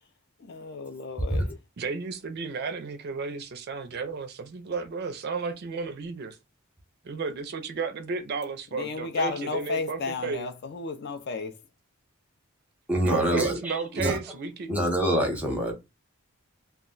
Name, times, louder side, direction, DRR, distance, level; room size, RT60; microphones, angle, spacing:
voice 1, 0.4-1.5 8.7-11.6, left 4 dB, 50° left, 0.4 m, -33 dB
voice 2, 1.8-6.4 7.1-10.5 13.0-14.7, right 4 dB, 45° right, 0.4 m, -33 dB
voice 3, 12.9-14.2 14.7-15.7, equal, 5° right, 0.8 m, -25 dB
2.3 x 2.1 x 3.7 m
head